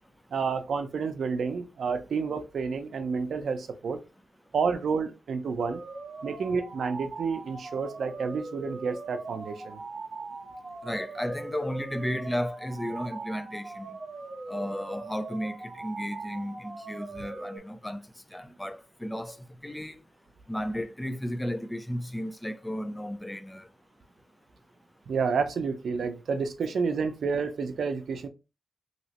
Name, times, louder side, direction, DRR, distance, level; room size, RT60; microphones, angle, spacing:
voice 1, 0.3-4.0 4.5-5.8 6.2-9.8 25.1-28.3, right 5 dB, 80° right, 0.5 m, -30 dB
sound 1, 5.6-17.6, right 3 dB, 45° right, 0.7 m, -41 dB
voice 2, 10.8-14.0 14.5-18.0 18.3-19.4 19.6-20.0 20.5-23.7, equal, 10° left, 0.4 m, -34 dB
3.1 x 2.9 x 2.8 m
wide cardioid pair, 100°, 0 cm